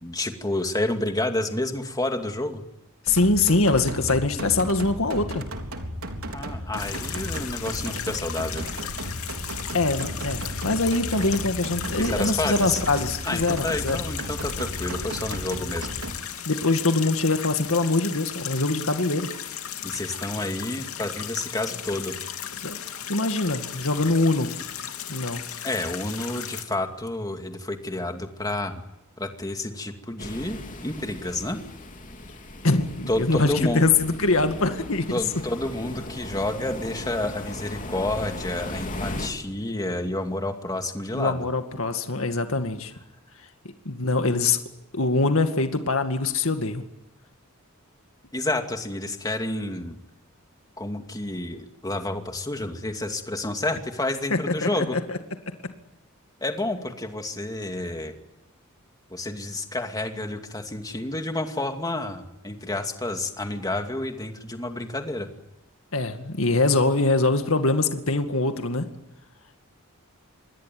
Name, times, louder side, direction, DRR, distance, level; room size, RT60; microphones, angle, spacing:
voice 1, 0.0-2.6 6.3-8.7 12.0-12.8 13.3-15.9 19.8-22.1 25.6-28.8 29.2-31.6 33.1-33.8 35.1-41.5 48.3-50.0 50.8-55.0 56.4-58.1 59.1-65.3, left 2 dB, 20° left, 5 dB, 2.5 m, -29 dB
voice 2, 3.1-5.4 9.7-14.0 16.5-19.3 22.6-22.8 23.1-24.5 25.1-25.4 32.6-35.0 41.1-42.9 43.9-44.6 44.9-46.8 54.3-55.2 65.9-68.9, left 3 dB, 70° left, 6 dB, 2.2 m, -23 dB
sound 1, 3.1-16.1, equal, 85° right, 3.8 m, -34 dB
sound 2, 6.8-26.6, left 9 dB, 85° left, 2.6 m, -36 dB
sound 3, 30.2-39.3, left 1 dB, 40° left, 3.3 m, -37 dB
27.0 x 22.0 x 9.4 m, 0.88 s
head